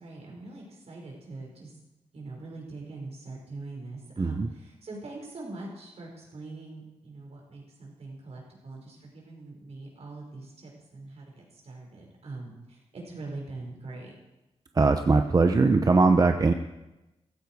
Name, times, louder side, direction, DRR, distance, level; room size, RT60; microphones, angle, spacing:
voice 1, 0.0-1.8 2.1-14.1, right 2 dB, 70° right, -1 dB, 5.5 m, -43 dB
voice 2, 14.8-16.5, right 3 dB, 35° right, 6 dB, 0.8 m, -21 dB
15.5 x 15.0 x 4.8 m, 1.0 s
wide cardioid pair, 110°, 11 cm